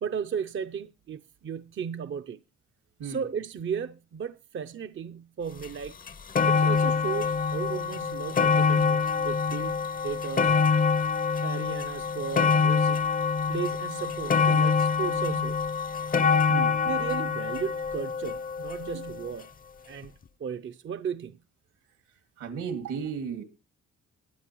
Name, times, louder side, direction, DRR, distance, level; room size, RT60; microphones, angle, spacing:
voice 1, 0.0-2.4 3.0-6.0 6.5-10.5 11.4-13.0 13.5-15.6 16.8-19.5 19.9-20.1 20.4-21.4, right 7 dB, 40° right, 0.6 m, -35 dB
sound 1, 5.6-5.7 6.1-19.2 20.0-20.1, left 5 dB, 30° left, 0.6 m, -25 dB
voice 2, 22.4-23.4, right 6 dB, 80° right, 2.3 m, -34 dB
22.0 x 8.1 x 3.0 m
cardioid pair, 90°, 30 cm